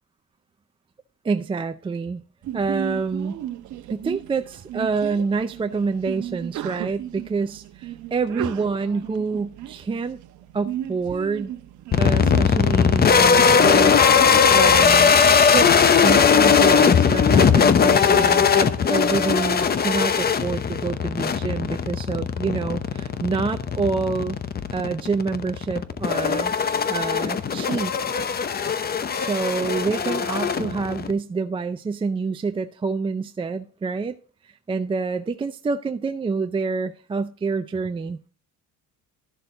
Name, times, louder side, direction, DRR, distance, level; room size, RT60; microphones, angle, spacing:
voice 1, 1.2-2.2 2.5-3.4 3.9-10.2 10.5-11.5 12.0-15.1 15.5-15.7 16.0-24.4 24.7-26.5 26.9-27.9 29.2-34.2 34.4-38.3, right 4 dB, 15° right, 8 dB, 0.4 m, -27 dB
Sneeze, 2.4-12.4, right 12 dB, 60° right, 0.9 m, -35 dB
sound 1, 11.9-31.1, left 6 dB, 25° left, 0.8 m, -19 dB
12.5 x 6.8 x 3.9 m, 0.39 s
cardioid pair, 130°, 35 cm